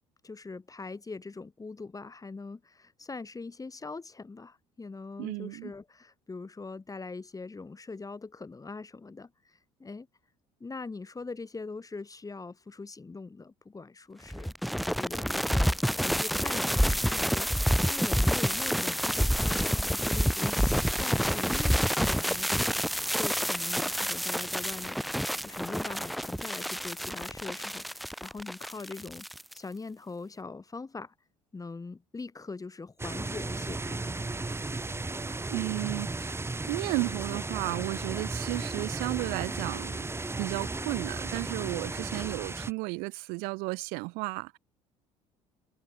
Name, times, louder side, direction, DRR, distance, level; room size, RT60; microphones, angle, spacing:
voice 1, 0.2-10.1 10.6-14.5 15.0-25.0 25.4-29.3 29.5-31.1 31.5-34.3, left 3 dB, 20° left, 3.5 m, -42 dB
voice 2, 5.2-5.7 35.5-36.4 36.7-40.1 40.4-44.6, right 29 dB, 70° right, 1.1 m, -33 dB
sound 1, 14.3-29.6, equal, ahead, 2.7 m, -28 dB
sound 2, 33.0-42.7, right 3 dB, 15° right, 2.4 m, -35 dB
hypercardioid pair, 60°, 16 cm